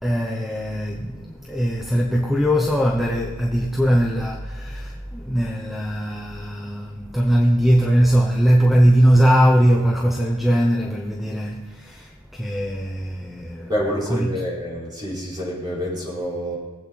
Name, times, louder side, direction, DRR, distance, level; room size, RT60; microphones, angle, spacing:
voice 1, 0.0-13.7 14.1-14.4, equal, ahead, 1.0 m, -20 dB
voice 2, 13.7-16.6, equal, 20° right, 5.0 m, -27 dB
22.0 x 8.2 x 4.3 m
head